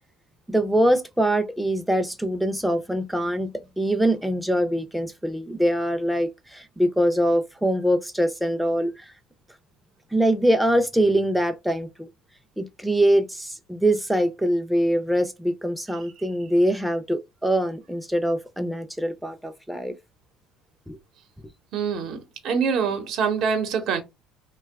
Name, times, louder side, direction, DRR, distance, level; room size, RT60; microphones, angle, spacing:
voice 1, 0.5-3.5 3.8-9.1 10.1-12.1 12.6-19.9 20.9-21.0, right 1 dB, ahead, 0.5 m, -23 dB
voice 2, 21.7-24.0, right 6 dB, 60° right, 0.9 m, -25 dB
2.8 x 2.3 x 3.4 m
supercardioid pair, 90°, 0 cm